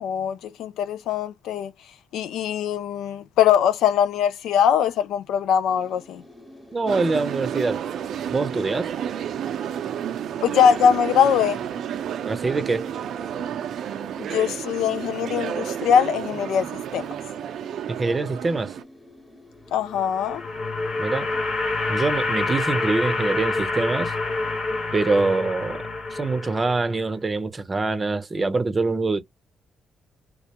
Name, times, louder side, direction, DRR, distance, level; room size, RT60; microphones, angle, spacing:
voice 1, 0.0-1.7 2.1-6.2 10.4-11.6 14.2-16.7 16.9-17.1 19.7-20.4, left 8 dB, 80° left, 0.4 m, -21 dB
sound 1, 5.7-21.4, left 1 dB, ahead, 1.2 m, -49 dB
voice 2, 6.7-7.8 8.3-8.9 12.2-12.9 17.9-18.8 21.0-21.3 21.9-24.1 24.9-29.2, right 3 dB, 25° right, 0.6 m, -24 dB
sound 2, 6.9-18.8, right 9 dB, 70° right, 0.4 m, -31 dB
sound 3, 19.8-27.0, left 3 dB, 65° left, 0.8 m, -27 dB
2.3 x 2.2 x 2.8 m
cardioid pair, 90°, 0 cm